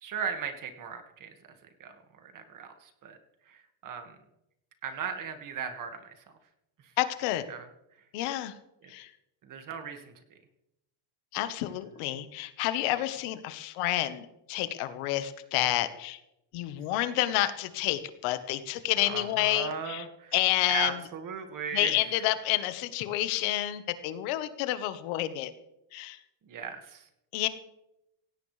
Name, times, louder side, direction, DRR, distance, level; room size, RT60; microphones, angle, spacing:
voice 1, 0.0-3.2 3.5-4.2 4.8-6.2 6.8-6.9 7.5-7.7 8.8-8.9 9.4-10.1 19.0-20.3 20.6-22.0 26.5-27.1, right 6 dB, 40° right, 6 dB, 1.9 m, -37 dB
voice 2, 7.0-7.5 8.1-8.5 8.9-9.1 11.3-16.2 16.5-20.0 20.3-21.0 21.7-25.5 25.9-26.2 27.3-27.5, left 14 dB, 85° left, 11 dB, 1.4 m, -29 dB
17.5 x 16.5 x 3.3 m, 0.86 s
cardioid pair, 155°, 49 cm